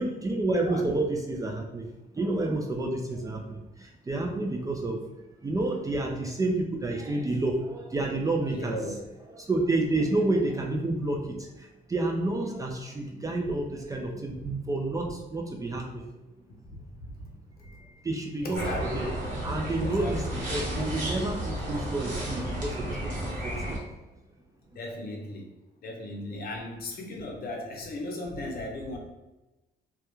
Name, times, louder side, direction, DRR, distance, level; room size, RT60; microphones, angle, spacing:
voice 1, 0.0-1.9 2.1-5.0 5.4-8.8 9.4-16.0 17.6-19.1 19.4-23.8, right 2 dB, 20° right, 1 dB, 0.3 m, -30 dB
voice 2, 8.4-9.0 14.4-14.5 16.7-17.1 18.4-19.1 19.8-20.3 24.7-25.5 25.8-29.0, left 1 dB, 55° left, 0 dB, 0.6 m, -37 dB
sound 1, 18.5-23.8, equal, 45° right, 1.0 m, -32 dB
2.3 x 2.1 x 2.9 m, 1.0 s
cardioid pair, 100°, 18 cm